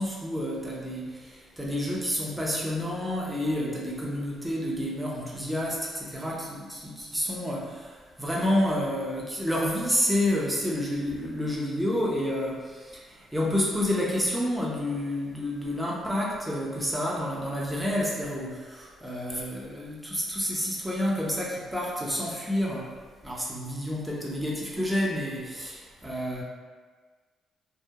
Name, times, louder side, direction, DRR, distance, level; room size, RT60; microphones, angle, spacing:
voice 1, 0.0-22.9 23.2-26.4, left 1 dB, 5° right, -5 dB, 0.5 m, -29 dB
2.7 x 2.1 x 2.2 m, 1.4 s
cardioid pair, 90°, 0 cm